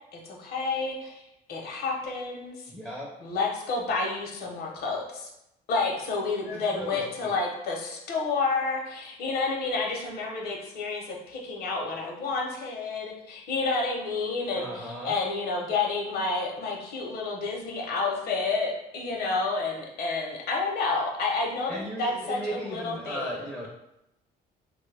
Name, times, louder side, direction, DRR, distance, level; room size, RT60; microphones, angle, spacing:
voice 1, 0.1-1.2 1.5-2.7 3.2-5.3 5.7-23.7, left 3 dB, 65° left, 0 dB, 0.8 m, -30 dB
voice 2, 2.7-3.1 6.4-7.3 14.5-15.1 21.7-23.7, equal, 5° right, -3 dB, 0.5 m, -36 dB
3.1 x 2.2 x 3.3 m, 0.85 s
cardioid pair, 110°, 17 cm